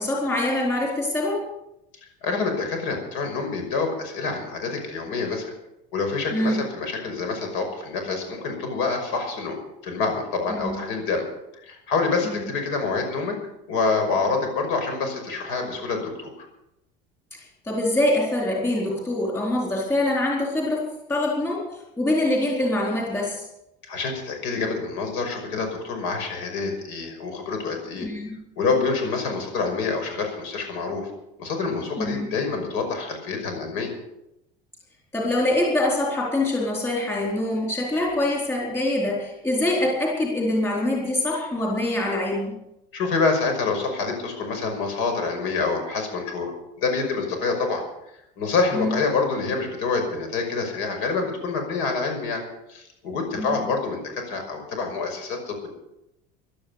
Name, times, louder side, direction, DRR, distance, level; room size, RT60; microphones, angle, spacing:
voice 1, 0.0-1.5 6.3-6.6 10.5-10.8 12.2-12.5 17.6-23.4 28.0-28.4 32.0-32.3 35.1-42.5 48.7-49.0 53.4-53.5, left 1 dB, 10° left, -3 dB, 4.2 m, -24 dB
voice 2, 2.2-5.5 5.9-11.2 11.6-13.4 13.7-16.3 23.8-28.1 28.6-31.1 31.4-33.9 42.9-46.5 46.8-47.8 48.4-52.4 52.7-55.7, left 4 dB, 70° left, 5 dB, 5.8 m, -27 dB
16.5 x 12.0 x 6.7 m, 0.85 s
cardioid pair, 170°, 20 cm